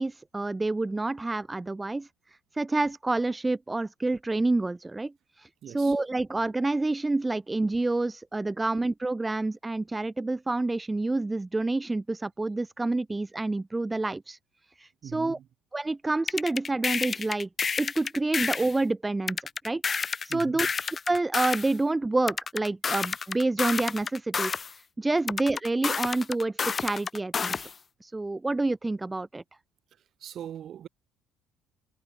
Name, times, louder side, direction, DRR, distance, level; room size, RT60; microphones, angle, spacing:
voice 1, 0.0-2.1 2.5-5.1 5.4-5.5 5.7-14.4 14.8-15.4 15.7-17.5 17.8-19.4 19.6-20.7 21.1-24.6 25.0-27.7 28.0-29.4, right 2 dB, 20° right, 1.2 m, -28 dB
voice 2, 5.6-6.0 15.0-15.5 20.3-20.7 30.2-30.9, right 10 dB, 55° right, 3.8 m, -40 dB
sound 1, 16.3-18.7 19.3-21.7 22.3-24.7 25.3-27.7, left 5 dB, 35° left, 0.4 m, -30 dB
hypercardioid pair, 55°, 0 cm